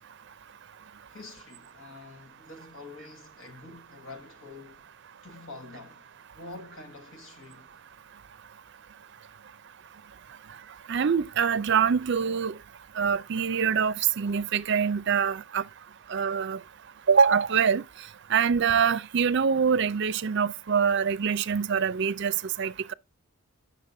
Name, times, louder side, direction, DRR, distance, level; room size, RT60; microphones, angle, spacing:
voice 1, 1.1-4.8 5.2-6.1 6.4-7.7, left 3 dB, 60° left, 1.4 m, -46 dB
voice 2, 10.9-12.5 13.0-15.6 16.1-16.6 17.1-17.8 18.3-22.9, right 6 dB, 55° right, 0.5 m, -24 dB
8.2 x 6.0 x 3.8 m
head